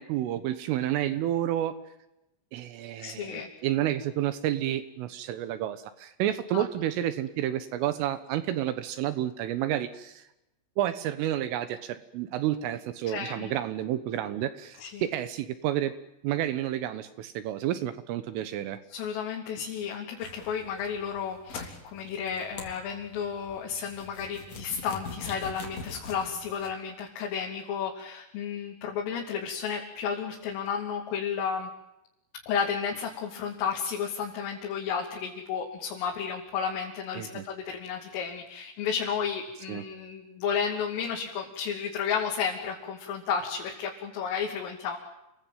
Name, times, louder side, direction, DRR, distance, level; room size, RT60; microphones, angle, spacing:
voice 1, 0.0-1.7 2.5-10.3 10.8-15.9 16.2-18.8 37.2-37.4 39.7-39.8, right 12 dB, 75° right, 12 dB, 3.7 m, -30 dB
voice 2, 3.0-3.5 6.5-6.7 13.1-13.5 14.8-15.0 18.9-31.7 32.5-45.0, left 7 dB, 75° left, 0 dB, 5.4 m, -32 dB
sound 1, 20.2-26.7, left 3 dB, 35° left, 4.3 m, -44 dB
29.5 x 21.5 x 9.2 m, 0.88 s
omnidirectional pair, 6.0 m